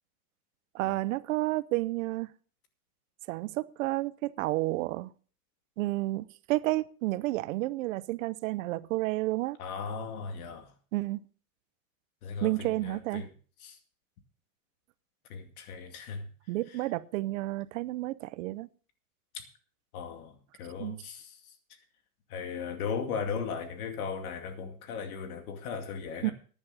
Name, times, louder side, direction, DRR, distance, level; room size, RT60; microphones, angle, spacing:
voice 1, 0.7-2.3 3.3-5.1 5.8-9.6 10.9-11.2 12.4-13.2 16.5-18.7 20.8-21.0 26.2-26.3, right 18 dB, 60° right, 0.7 m, -31 dB
voice 2, 9.6-10.7 12.2-13.3 13.6-13.8 15.3-16.3 16.7-16.8 19.3-19.4 19.9-21.4 22.3-26.3, left 5 dB, 80° left, 2.5 m, -37 dB
15.0 x 10.5 x 4.1 m
supercardioid pair, 170°, 43 cm